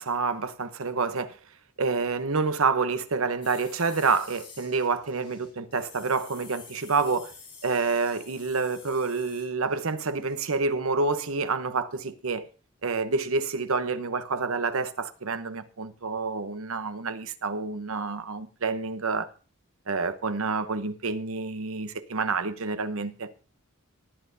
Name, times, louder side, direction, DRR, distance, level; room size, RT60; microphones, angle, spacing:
voice 1, 0.0-1.4 1.8-7.3 7.6-12.5 12.8-19.3 19.9-23.3, right 4 dB, 70° right, 0.9 m, -28 dB
sound 1, 3.4-9.9 10.2-10.4, left 5 dB, 25° left, 3.9 m, -49 dB
18.5 x 8.8 x 2.7 m
head